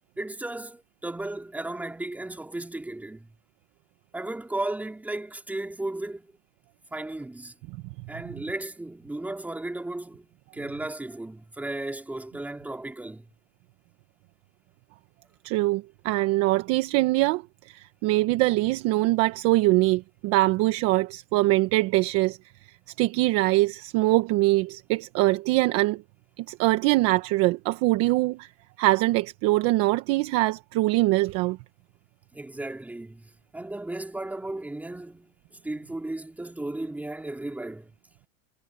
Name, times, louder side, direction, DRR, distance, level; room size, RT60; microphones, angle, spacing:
voice 1, 0.2-3.3 4.1-6.3 6.9-7.5 8.1-13.3 32.3-37.9, right 2 dB, 5° right, 3.8 m, -35 dB
voice 2, 15.4-22.4 23.0-26.0 26.4-28.5 28.8-31.6, right 19 dB, 35° right, 1.3 m, -23 dB
supercardioid pair, 155°, 42 cm